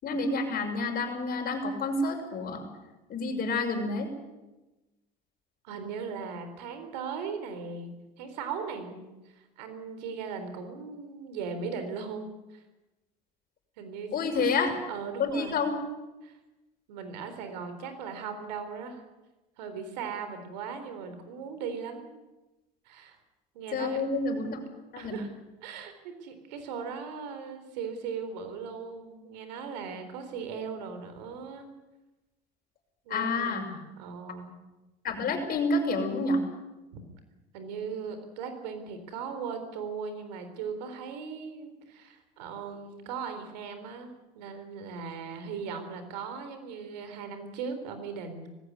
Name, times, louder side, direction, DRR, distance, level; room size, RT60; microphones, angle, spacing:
voice 1, 0.0-2.7 3.1-4.1 14.1-14.7 15.2-15.7 23.7-24.6 24.9-25.2 33.1-33.7 35.0-36.4, left 3 dB, 45° left, 3 dB, 6.0 m, -29 dB
voice 2, 5.6-12.6 13.8-14.5 14.9-15.6 16.2-16.4 16.9-19.0 19.6-22.1 22.9-23.2 23.5-24.0 24.3-24.5 25.0-25.3 25.6-31.7 33.0-34.5 36.9-37.0 37.5-48.5, right 5 dB, 90° right, 9 dB, 3.9 m, -38 dB
19.5 x 16.5 x 9.8 m, 1.1 s
supercardioid pair, 90°, 21 cm